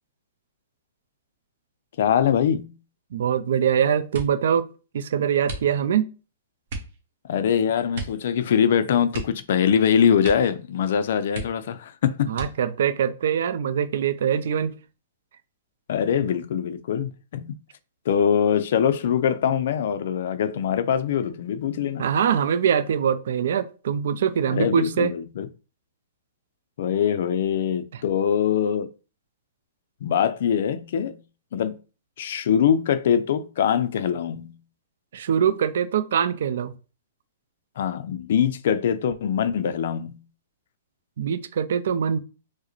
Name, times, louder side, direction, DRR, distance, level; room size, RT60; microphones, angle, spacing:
voice 1, 2.0-2.8 7.3-12.3 15.9-17.5 18.1-22.1 24.5-25.5 26.8-28.9 30.0-31.2 31.5-31.8 32.2-34.6 37.8-40.2, left 8 dB, 55° left, 0.4 m, -23 dB
voice 2, 3.1-4.7 4.9-6.1 12.3-14.7 22.0-25.1 27.9-28.0 35.1-36.7 41.2-42.2, right 8 dB, 65° right, 0.4 m, -23 dB
sound 1, 4.1-4.5 5.4-6.1 6.7-7.0 7.9-8.3 8.5-8.6 9.1-9.8 10.2-10.6 10.9-11.0 11.3-11.8 12.3-12.9 13.6-14.2 14.6-15.0, right 3 dB, 50° right, 1.1 m, -36 dB
4.6 x 2.0 x 3.0 m
hypercardioid pair, 165°, 0 cm